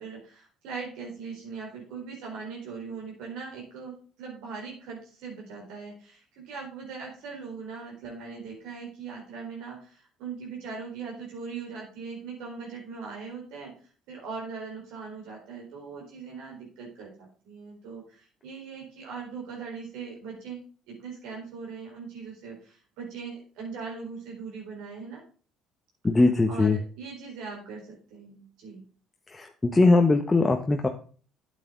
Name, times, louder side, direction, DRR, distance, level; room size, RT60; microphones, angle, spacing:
voice 1, 0.0-13.7 14.1-20.6 20.9-25.2 26.5-28.8, right 5 dB, 75° right, -2 dB, 4.3 m, -40 dB
voice 2, 26.0-26.8 29.3-30.9, left 3 dB, 20° left, 4 dB, 1.1 m, -21 dB
8.8 x 8.5 x 3.8 m, 0.39 s
hypercardioid pair, 65°, 0 cm